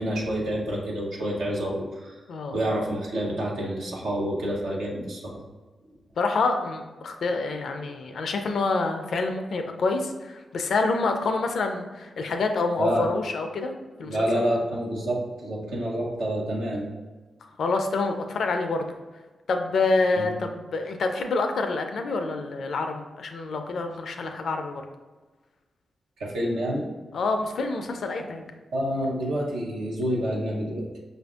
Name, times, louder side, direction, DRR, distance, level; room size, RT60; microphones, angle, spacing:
voice 1, 0.0-2.2 2.5-5.4 12.8-13.1 14.1-16.9 20.1-20.3 26.2-26.9 28.7-31.0, equal, 85° right, -4 dB, 0.7 m, -28 dB
voice 2, 6.2-13.7 14.0-14.4 17.6-18.9 19.5-24.8 27.1-28.5, left 3 dB, 70° left, 5 dB, 0.4 m, -27 dB
5.0 x 2.5 x 2.3 m, 1.3 s
supercardioid pair, 40°, 0 cm